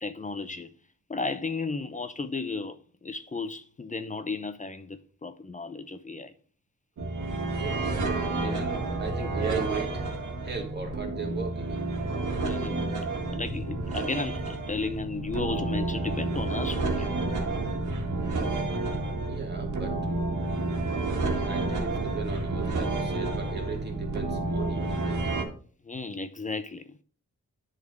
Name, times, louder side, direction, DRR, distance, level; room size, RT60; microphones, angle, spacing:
voice 1, 0.0-0.7 1.1-2.8 3.0-6.3 12.4-12.9 13.3-17.1 25.8-26.9, left 3 dB, 25° left, 0.5 m, -34 dB
sound 1, 7.0-25.4, right 2 dB, 85° right, 1.6 m, -30 dB
voice 2, 7.5-10.0 10.4-11.9 19.2-20.1 21.5-25.3, right 5 dB, 35° right, 2.2 m, -37 dB
10.0 x 4.1 x 5.3 m
wide cardioid pair, 125°, 29 cm